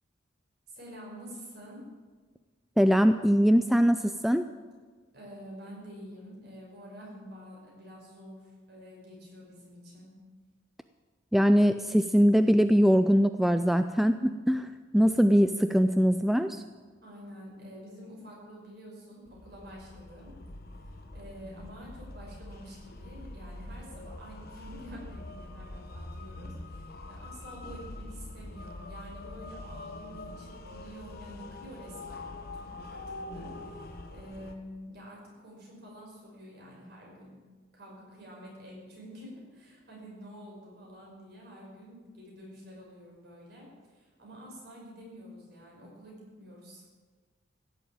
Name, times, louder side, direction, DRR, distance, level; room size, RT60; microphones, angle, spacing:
voice 1, 0.7-1.8 5.1-10.1 17.0-20.3 20.8-32.2 32.5-37.4 37.7-46.8, equal, 55° right, -3 dB, 5.9 m, -48 dB
voice 2, 2.8-4.4 11.3-16.6, equal, ahead, 9 dB, 0.3 m, -22 dB
sound 1, 19.3-34.5, left 2 dB, 50° left, 1.1 m, -44 dB
15.5 x 8.0 x 8.9 m, 1.5 s
head